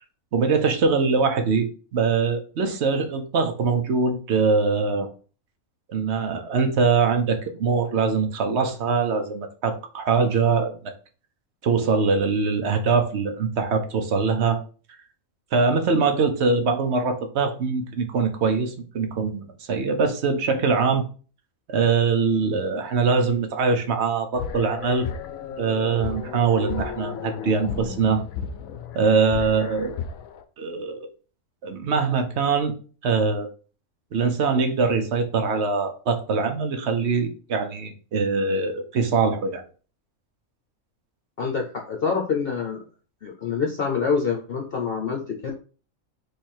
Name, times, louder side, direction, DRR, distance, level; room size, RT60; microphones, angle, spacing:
voice 1, 0.3-5.1 5.9-10.7 11.6-14.6 15.5-21.0 21.7-25.1 25.6-28.2 28.9-29.9 30.6-31.1 31.6-32.7 33.0-33.5 34.1-39.6, right 4 dB, 55° right, 6 dB, 0.9 m, -23 dB
sound 1, 24.3-30.4, left 7 dB, 75° left, 1.0 m, -34 dB
voice 2, 41.4-42.8 43.2-45.5, left 5 dB, 50° left, 1 dB, 0.8 m, -26 dB
3.5 x 3.3 x 4.4 m, 0.38 s
omnidirectional pair, 1.5 m